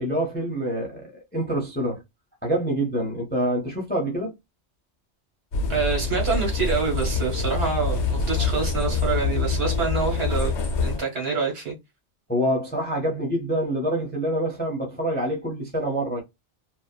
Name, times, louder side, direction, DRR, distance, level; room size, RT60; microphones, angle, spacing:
voice 1, 0.0-2.0 2.4-4.4 12.3-16.2, right 1 dB, 10° left, 0.5 m, -26 dB
sound 1, 5.5-11.0, left 4 dB, 75° left, 1.0 m, -25 dB
voice 2, 5.7-10.5 10.8-11.7, right 5 dB, 60° right, 1.4 m, -26 dB
2.7 x 2.2 x 2.2 m
omnidirectional pair, 1.2 m